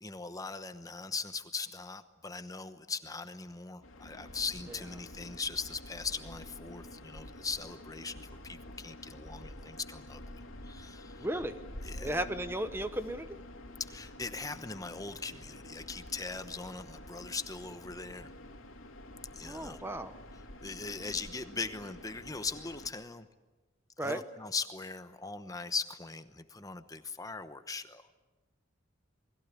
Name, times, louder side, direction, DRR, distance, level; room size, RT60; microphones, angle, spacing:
voice 1, 0.0-11.3 11.8-12.2 13.8-18.3 19.3-19.8 20.3-23.3 24.0-28.2, left 4 dB, 15° left, 10 dB, 1.0 m, -40 dB
sound 1, 3.8-22.9, left 1 dB, 85° left, 3.0 m, -48 dB
voice 2, 11.2-11.6 12.0-13.3 19.4-20.1 24.0-24.2, right 1 dB, 10° right, 10 dB, 0.9 m, -34 dB
28.5 x 21.0 x 8.3 m, 1.2 s
head